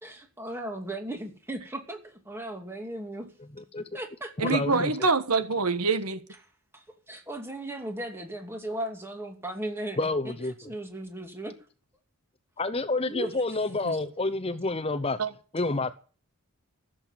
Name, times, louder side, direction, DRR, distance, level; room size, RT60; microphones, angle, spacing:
voice 1, 0.0-2.0 2.3-3.3 3.9-4.5 6.7-11.5 13.0-13.6, right 1 dB, 10° right, 2.6 m, -37 dB
voice 2, 3.6-3.9 4.4-4.9 10.0-10.7 12.6-15.2 15.5-15.9, left 2 dB, 25° left, 0.8 m, -29 dB
voice 3, 4.4-6.2 13.8-13.9 15.2-15.3, right 4 dB, 85° right, 1.4 m, -25 dB
15.0 x 7.8 x 9.2 m
head